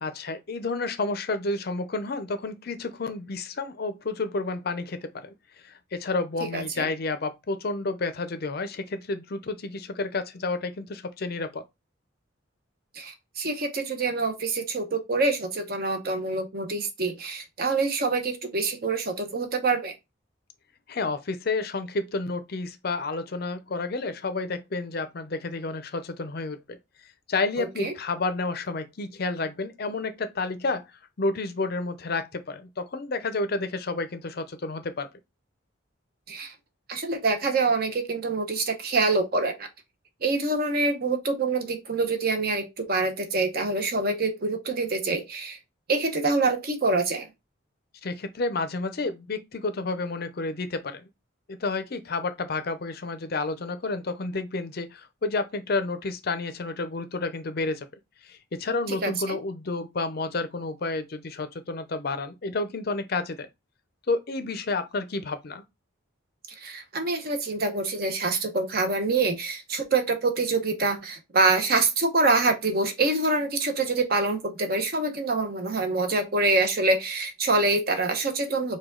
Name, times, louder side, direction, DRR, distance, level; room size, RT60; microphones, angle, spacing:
voice 1, 0.0-5.3 5.6-11.6 20.9-26.8 27.3-30.8 31.2-35.1 48.0-51.0 51.5-57.9 58.2-63.5 64.1-65.6, left 3 dB, 50° left, 0.5 m, -30 dB
voice 2, 6.5-6.9 12.9-19.9 27.6-27.9 36.3-36.5 36.9-39.7 40.2-45.6 45.9-47.3 58.9-59.4 66.6-78.8, right 3 dB, 45° right, 0.8 m, -26 dB
4.8 x 2.3 x 3.7 m
head